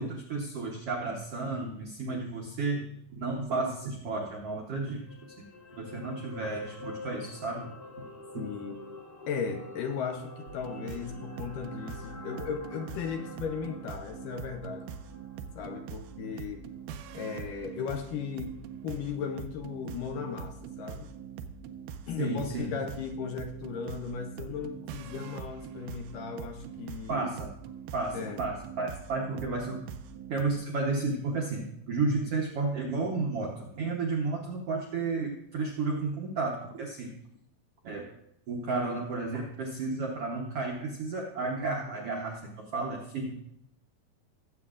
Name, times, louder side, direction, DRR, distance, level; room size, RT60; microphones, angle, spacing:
voice 1, 0.0-5.0 5.8-7.7 22.2-22.7 27.1-27.5 27.9-29.8 30.3-37.1 37.8-38.1 38.5-43.3, right 3 dB, 75° right, -1 dB, 1.4 m, -32 dB
sound 1, 4.8-17.1 17.5-17.6, left 3 dB, 30° left, 1.0 m, -47 dB
voice 2, 8.4-8.8 9.3-14.9 15.6-16.6 17.1-18.6 18.8-21.1 22.1-27.3 28.1-28.4, left 6 dB, 75° left, 4 dB, 2.1 m, -36 dB
sound 2, 10.5-30.4, right 7 dB, 90° right, 1.8 m, -43 dB
19.0 x 7.9 x 2.5 m, 0.75 s
omnidirectional pair, 4.3 m